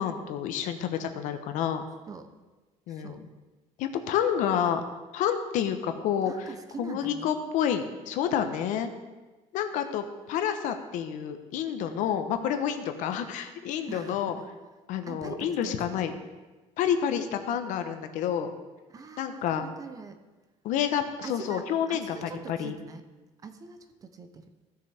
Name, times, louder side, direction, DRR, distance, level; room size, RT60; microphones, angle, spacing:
voice 1, 0.0-1.8 2.9-3.2 3.8-4.8 5.1-6.5 6.8-8.9 9.5-14.4 14.9-16.1 16.8-18.5 19.2-19.6 20.6-22.7, left 9 dB, 70° left, 8 dB, 0.9 m, -29 dB
voice 2, 2.9-3.2 6.2-7.3 13.0-13.2 13.9-14.4 15.1-16.0 18.9-20.2 21.2-23.0 23.4-24.5, right 4 dB, 25° right, 8 dB, 0.7 m, -43 dB
15.5 x 6.6 x 3.4 m, 1.2 s
cardioid pair, 155°, 13 cm